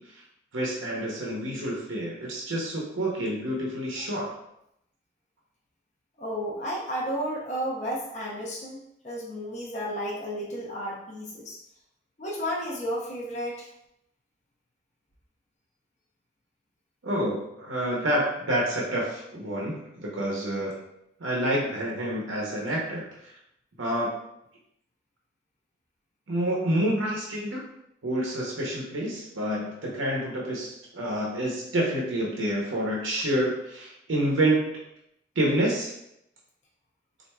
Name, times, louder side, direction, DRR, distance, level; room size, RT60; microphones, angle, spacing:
voice 1, 0.5-4.3 17.0-20.7 21.2-23.0 23.8-24.1 26.3-27.6 28.0-34.8 35.4-35.9, right 1 dB, 90° right, -3 dB, 0.8 m, -28 dB
voice 2, 6.2-11.6 12.2-13.7, equal, 35° left, -4 dB, 0.6 m, -32 dB
4.2 x 2.5 x 2.2 m, 0.80 s
head